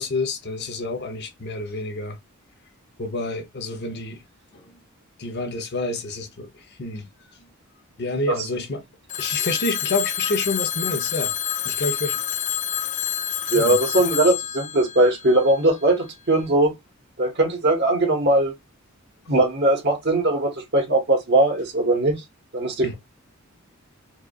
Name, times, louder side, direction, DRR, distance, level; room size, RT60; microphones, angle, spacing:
voice 1, 0.0-2.2 3.0-4.2 4.5-4.6 5.2-6.5 6.8-7.0 8.0-8.8 9.2-11.3 11.6-12.2 13.5-13.8 22.8-22.9, left 2 dB, 50° left, 0.8 m, -28 dB
Telephone, 9.1-15.9, left 10 dB, 35° left, 0.4 m, -28 dB
voice 2, 13.5-16.7 17.2-18.5 19.3-22.2 22.5-22.9, right 2 dB, 50° right, 1.5 m, -20 dB
4.8 x 2.4 x 2.4 m
head